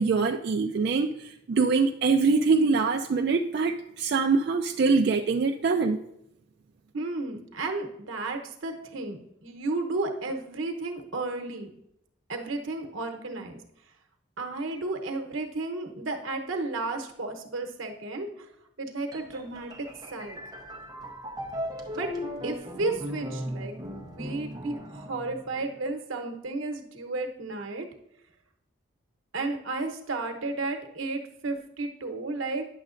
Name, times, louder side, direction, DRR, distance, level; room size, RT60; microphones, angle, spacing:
voice 1, 0.0-6.0, right 4 dB, 55° right, 0.3 m, -24 dB
voice 2, 6.9-11.7 12.3-13.6 14.4-18.5 18.8-20.4 21.9-22.1 22.4-27.9 29.3-32.6, right 2 dB, 85° right, 1.0 m, -33 dB
sound 1, 19.1-25.8, equal, 20° right, 0.7 m, -38 dB
9.7 x 6.4 x 2.5 m
head